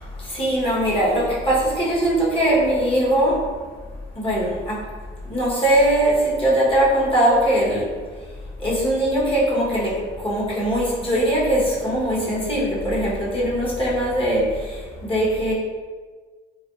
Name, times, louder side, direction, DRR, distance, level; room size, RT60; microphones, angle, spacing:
voice 1, 0.2-3.5 4.1-4.9 5.2-7.9 8.6-15.5, right 1 dB, 25° left, -6 dB, 1.2 m, -21 dB
3.3 x 2.2 x 2.5 m, 1.5 s
cardioid pair, 90°, 20 cm